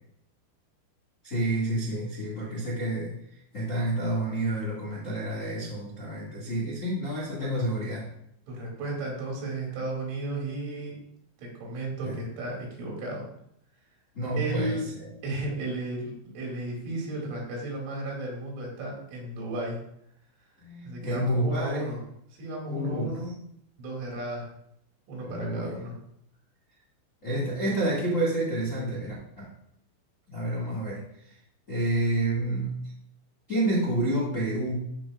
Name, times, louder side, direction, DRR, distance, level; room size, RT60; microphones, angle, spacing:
voice 1, 1.2-3.1 3.5-8.0 12.0-12.2 14.1-15.1 20.6-21.9 22.7-23.1 25.2-25.7 27.2-29.5 30.3-31.3 31.7-32.9 33.5-35.0, right 1 dB, 75° left, -6 dB, 0.7 m, -29 dB
voice 2, 8.5-11.0 11.4-13.3 14.3-14.8 15.2-19.8 20.8-22.0 22.4-23.3 23.8-24.5 25.1-26.0, right 2 dB, 75° right, -2 dB, 4.8 m, -34 dB
14.0 x 5.6 x 2.5 m, 0.74 s
omnidirectional pair, 5.7 m